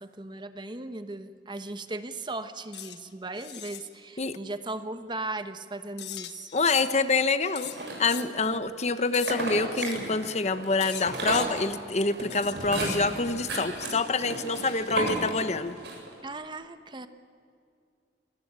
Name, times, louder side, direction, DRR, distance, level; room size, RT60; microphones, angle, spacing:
voice 1, 0.0-6.5 16.2-17.1, right 2 dB, 25° right, 10 dB, 1.1 m, -37 dB
sound 1, 2.7-3.0 3.3-3.9 6.0-7.0 7.6-8.3 9.1-9.4 9.8-10.0 10.8-11.5 12.3-13.0 14.4-15.4, left 12 dB, 75° left, 1.6 m, -40 dB
voice 2, 6.5-7.7 8.0-15.8, left 3 dB, 40° left, 11 dB, 1.1 m, -26 dB
sound 2, 7.6-8.5 9.1-16.2, right 2 dB, 75° right, 8.0 m, -34 dB
27.0 x 20.0 x 8.9 m, 2.3 s
head